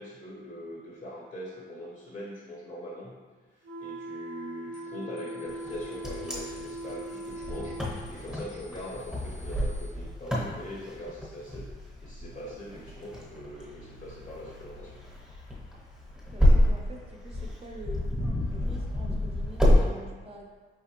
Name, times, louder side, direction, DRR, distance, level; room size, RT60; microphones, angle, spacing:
voice 1, 0.0-3.2 3.5-11.7 12.0-15.0, left 1 dB, 30° left, -4 dB, 0.6 m, -42 dB
sound 1, 3.6-7.9, right 2 dB, 70° right, 0.8 m, -40 dB
sound 2, 4.7-4.9 5.2-9.9, left 2 dB, 75° left, 0.6 m, -54 dB
Wind, 5.6-19.8, left 1 dB, 5° right, 0.8 m, -28 dB
voice 2, 16.3-18.1 18.5-20.4, equal, 30° right, 0 dB, 0.6 m, -46 dB
4.9 x 3.2 x 3.0 m, 1.4 s
wide cardioid pair, 170°, 21 cm